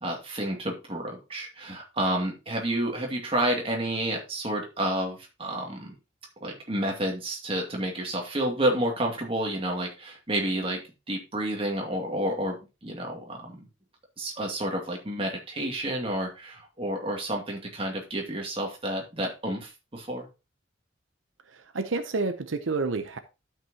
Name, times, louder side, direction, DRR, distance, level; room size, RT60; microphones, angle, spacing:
voice 1, 0.0-5.9 6.4-13.7 14.2-20.3, right 1 dB, 30° right, 2.3 m, -30 dB
voice 2, 21.5-23.2, right 3 dB, 85° right, 0.8 m, -29 dB
12.5 x 6.0 x 2.9 m
head